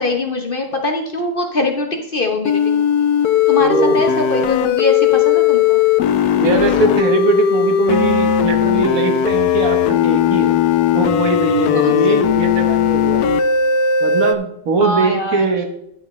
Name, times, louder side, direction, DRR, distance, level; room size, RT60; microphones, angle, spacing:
voice 1, 0.0-2.9 3.5-5.8 11.7-12.2 14.8-15.5, left 2 dB, 45° left, 3 dB, 0.9 m, -22 dB
sound 1, 2.4-14.3, left 8 dB, 85° left, 1.2 m, -16 dB
voice 2, 3.6-4.0 6.4-10.5 10.9-13.4 14.0-15.7, right 4 dB, 65° right, 6 dB, 1.5 m, -20 dB
10.5 x 8.3 x 3.1 m, 0.80 s
omnidirectional pair, 1.6 m